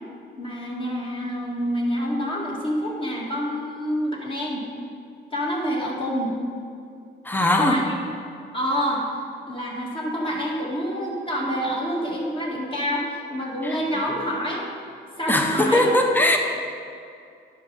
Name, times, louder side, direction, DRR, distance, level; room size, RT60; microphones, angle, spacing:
voice 1, 0.4-4.7 5.3-6.3 7.6-8.0 8.5-9.0 9.5-14.7 15.2-15.9, equal, 25° left, -3 dB, 1.9 m, -27 dB
voice 2, 7.2-7.9 13.6-14.0 15.3-16.4, left 1 dB, 10° left, 3 dB, 0.9 m, -20 dB
11.0 x 5.5 x 3.9 m, 2.4 s
cardioid pair, 90°, 20 cm